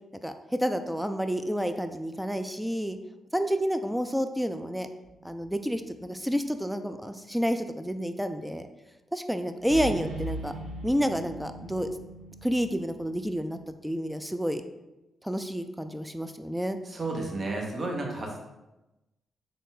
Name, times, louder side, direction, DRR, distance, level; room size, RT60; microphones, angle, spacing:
voice 1, 0.2-3.0 3.3-4.9 5.2-8.7 9.1-10.5 10.8-11.9 12.4-13.6 13.8-14.6 15.2-16.8, equal, 5° right, 8 dB, 0.3 m, -29 dB
sound 1, 5.0-5.6 9.6-13.7, right 2 dB, 80° right, 0.5 m, -40 dB
voice 2, 16.8-18.4, right 2 dB, 45° right, 1 dB, 0.9 m, -32 dB
3.7 x 2.4 x 3.8 m, 1.0 s
hypercardioid pair, 40°, 0 cm